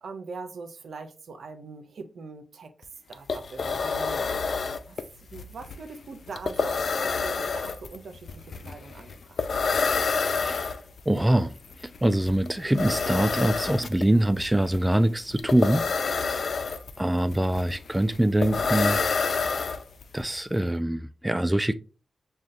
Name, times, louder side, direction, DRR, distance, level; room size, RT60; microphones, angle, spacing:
voice 1, 0.0-2.7 3.1-4.5 4.9-9.4, right 4 dB, 80° right, 0.6 m, -42 dB
sound 1, 2.8-2.9 3.1-20.2, left 4 dB, 70° left, 0.4 m, -29 dB
voice 2, 11.1-11.5 12.0-16.4 17.0-19.0 19.4-19.5 20.1-21.8, right 1 dB, 10° right, 0.3 m, -24 dB
6.1 x 2.3 x 2.5 m
cardioid pair, 60°, 0 cm